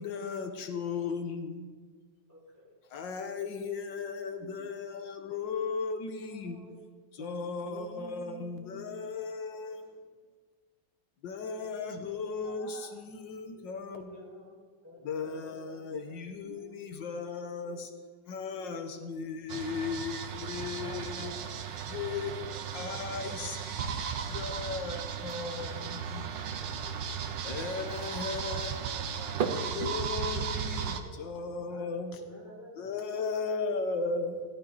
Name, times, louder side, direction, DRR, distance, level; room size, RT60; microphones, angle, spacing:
voice 1, 0.0-1.7 2.9-6.7 7.1-9.9 11.2-14.2 15.0-17.9 18.3-21.4 21.9-22.4 22.7-26.5 27.4-28.9 29.4-32.2 32.8-34.5, left 5 dB, 85° left, 1.8 m, -36 dB
voice 2, 2.3-2.7 11.4-13.1 14.0-14.5 14.8-15.6 16.0-16.2 16.5-16.6 20.8-21.6 28.0-29.6 30.7-31.2 31.7-32.9, right 1 dB, 10° right, 4.6 m, -49 dB
voice 3, 6.2-9.1 13.5-14.7 15.0-15.1 15.9-16.1 16.4-17.1 17.4-18.0 18.5-19.6 26.0-27.6 31.6-32.2, right 5 dB, 65° right, 1.2 m, -53 dB
sound 1, 19.5-31.0, right 7 dB, 85° right, 1.6 m, -35 dB
16.5 x 12.5 x 4.1 m
omnidirectional pair, 1.9 m